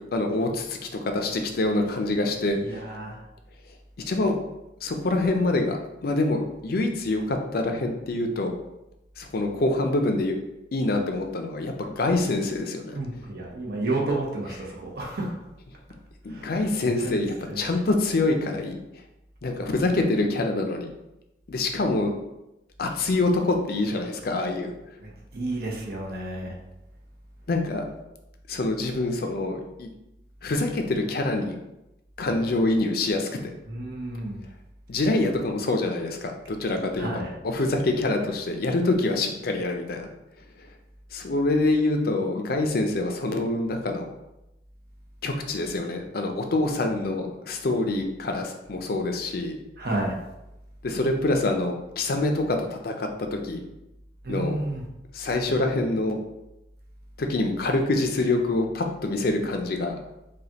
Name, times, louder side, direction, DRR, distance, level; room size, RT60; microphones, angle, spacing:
voice 1, 0.1-0.8 1.0-2.8 4.1-4.4 4.8-8.5 9.2-10.4 10.7-13.0 16.2-18.8 19.4-20.9 21.5-22.1 22.8-24.7 27.5-27.9 28.5-29.9 30.4-31.6 32.2-33.5 34.9-37.1 37.4-40.1 41.1-44.1 45.2-49.6 50.8-53.1 53.4-53.6 54.3-54.6 55.1-56.2 57.2-60.0, left 2 dB, 60° left, 4 dB, 0.5 m, -25 dB
voice 2, 2.5-3.2 12.9-15.3 16.3-17.2 17.5-17.6 25.0-26.6 33.6-34.4 36.9-37.3 49.8-50.1 54.2-54.8, right 2 dB, 60° right, -2 dB, 0.8 m, -31 dB
4.9 x 2.3 x 2.8 m, 0.92 s
head